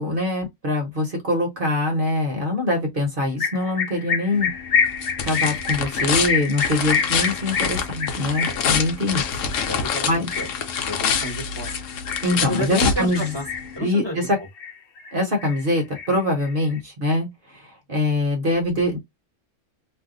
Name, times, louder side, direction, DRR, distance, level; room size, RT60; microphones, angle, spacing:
voice 1, 0.0-4.5 5.2-9.4 10.1-10.3 12.2-13.3 13.8-14.4 15.1-17.3 17.5-17.6 17.9-19.0, left 1 dB, 45° right, 0.9 m, -23 dB
sound 1, 3.4-12.7 13.1-13.8 14.2-15.1 15.4-16.7, left 6 dB, 55° left, 0.9 m, -27 dB
sound 2, 4.3-13.8, left 6 dB, 80° left, 1.0 m, -27 dB
voice 2, 9.6-10.5 10.8-11.7 12.3-13.4 13.7-14.5, equal, 20° left, 1.0 m, -31 dB
2.6 x 2.2 x 3.7 m
omnidirectional pair, 1.3 m